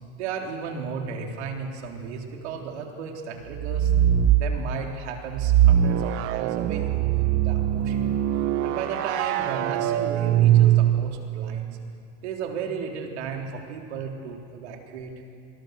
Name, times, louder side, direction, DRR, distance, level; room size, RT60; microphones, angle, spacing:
voice 1, 0.2-3.9 4.3-8.2 8.6-11.8 12.2-15.1, right 6 dB, 75° right, 2 dB, 3.6 m, -34 dB
sound 1, 3.5-4.5 5.3-11.3, right 11 dB, 40° right, 1.0 m, -22 dB
27.0 x 20.5 x 6.5 m, 2.4 s
supercardioid pair, 145°, 34 cm